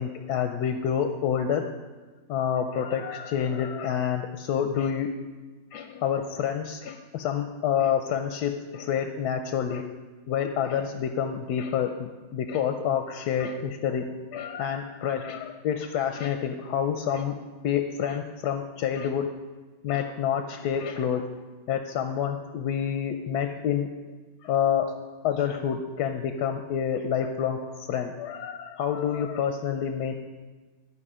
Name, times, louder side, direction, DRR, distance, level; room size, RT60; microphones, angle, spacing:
voice 1, 0.0-1.6 2.3-5.1 5.7-9.9 10.3-17.3 17.6-19.3 19.8-21.2 21.7-23.9 24.4-24.9 25.2-30.1, left 8 dB, 90° left, 6 dB, 1.2 m, -28 dB
12.5 x 4.9 x 4.9 m, 1.3 s
omnidirectional pair, 1.7 m